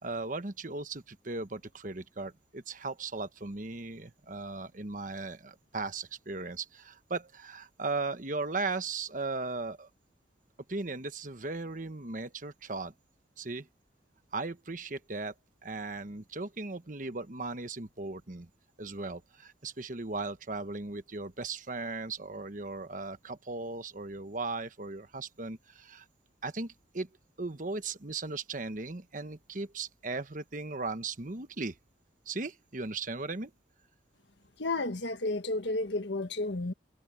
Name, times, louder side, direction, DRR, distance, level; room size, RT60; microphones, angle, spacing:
voice 1, 0.0-9.9 10.7-12.9 13.4-13.7 14.3-15.3 15.6-18.5 18.8-26.0 26.4-27.1 27.4-31.8 32.3-33.5, right 3 dB, 45° right, 1.2 m, -37 dB
voice 2, 34.6-36.7, left 2 dB, 75° left, 1.6 m, -32 dB
head